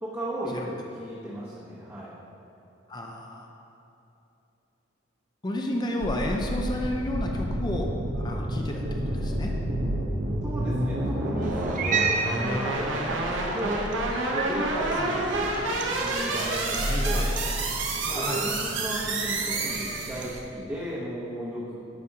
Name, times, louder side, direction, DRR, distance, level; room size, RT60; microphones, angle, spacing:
voice 1, 0.0-2.1 10.4-15.6 16.0-17.3 18.1-21.8, equal, 15° right, -9 dB, 1.0 m, -35 dB
voice 2, 2.9-3.5 5.4-7.9 8.2-8.8 9.1-9.6 15.0-15.2 16.8-17.3 18.2-18.5, left 1 dB, 20° left, 1 dB, 0.5 m, -31 dB
sound 1, 6.0-20.4, right 2 dB, 80° right, 0.9 m, -29 dB
Cat, 11.4-20.4, right 2 dB, 45° right, 0.5 m, -33 dB
11.5 x 5.2 x 2.8 m, 2.9 s
head